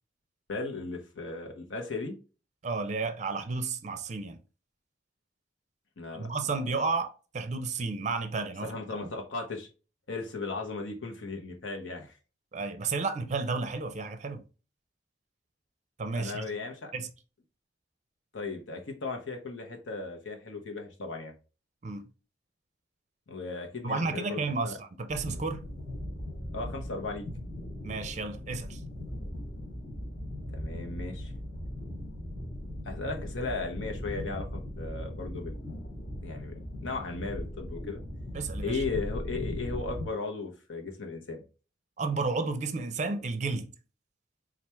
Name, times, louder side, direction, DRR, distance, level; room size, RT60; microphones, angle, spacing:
voice 1, 0.5-2.2 6.0-6.3 8.6-9.7 10.1-12.2 16.2-16.9 18.3-21.3 23.3-24.8 26.4-27.2 30.5-31.3 32.9-35.7 36.2-36.5 36.8-38.0 38.6-41.4, left 3 dB, 85° left, 1.0 m, -36 dB
voice 2, 2.6-4.4 6.1-8.7 12.5-14.4 16.0-16.5 16.9-17.1 21.8-22.1 23.8-25.6 27.8-28.8 38.3-38.8 42.0-43.7, right 4 dB, 40° right, 0.5 m, -32 dB
sound 1, 25.1-40.1, left 1 dB, 45° left, 1.2 m, -38 dB
4.4 x 2.5 x 3.4 m
head